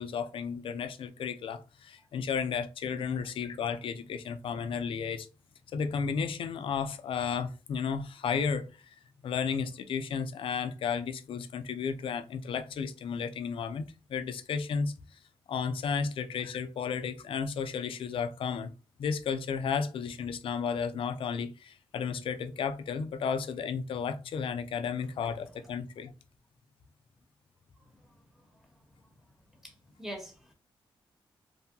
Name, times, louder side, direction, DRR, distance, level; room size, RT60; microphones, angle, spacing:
voice 1, 0.0-5.3 5.7-8.7 9.2-14.9 15.5-18.7 19.0-26.1, left 6 dB, 70° left, 0.4 m, -33 dB
voice 2, 29.6-30.5, equal, 5° right, 1.1 m, -44 dB
2.6 x 2.2 x 2.6 m
cardioid pair, 60°, 9 cm